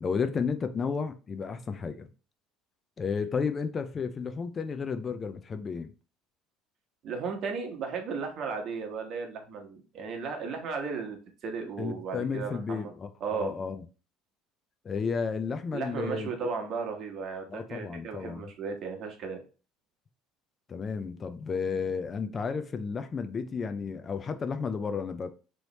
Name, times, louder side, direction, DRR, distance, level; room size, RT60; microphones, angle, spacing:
voice 1, 0.0-2.1 3.0-5.9 11.8-13.8 14.8-16.3 17.5-18.4 20.7-25.3, left 5 dB, 30° left, 0.5 m, -32 dB
voice 2, 7.0-12.9 13.2-13.5 15.7-19.4, right 5 dB, 55° right, 1.3 m, -35 dB
3.2 x 3.1 x 4.0 m
supercardioid pair, 105°, 0 cm